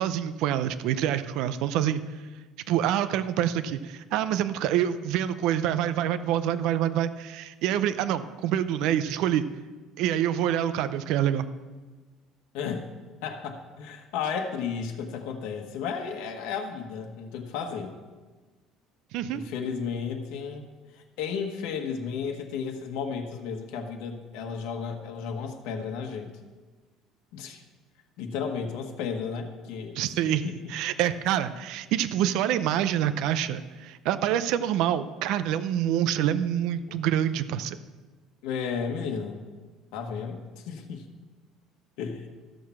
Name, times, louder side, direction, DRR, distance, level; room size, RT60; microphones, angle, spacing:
voice 1, 0.0-2.0 2.7-9.4 10.0-11.5 19.1-19.4 30.0-30.4 30.7-37.8, right 10 dB, 65° right, 12 dB, 0.5 m, -26 dB
voice 2, 12.5-12.9 13.2-17.9 19.3-20.6 20.9-26.3 27.3-27.6 28.2-30.0 30.2-30.5 36.9-37.0 38.4-39.4 39.9-41.0 42.0-42.3, left 6 dB, 75° left, 3 dB, 1.3 m, -33 dB
13.5 x 6.5 x 5.8 m, 1.3 s
cardioid pair, 165°, 0 cm